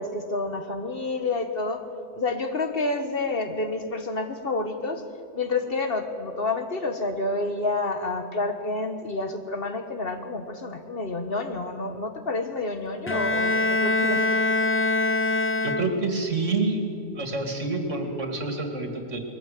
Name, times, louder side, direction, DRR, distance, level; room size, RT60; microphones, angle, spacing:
voice 1, 0.0-1.8 2.1-5.0 5.3-14.5, left 2 dB, 50° left, 7 dB, 1.6 m, -29 dB
Bowed string instrument, 13.1-16.3, left 2 dB, 20° left, 0.4 m, -24 dB
voice 2, 15.6-16.8 17.1-19.2, right 3 dB, 75° right, 5 dB, 2.7 m, -27 dB
20.5 x 15.0 x 9.3 m, 2.4 s
omnidirectional pair, 1.3 m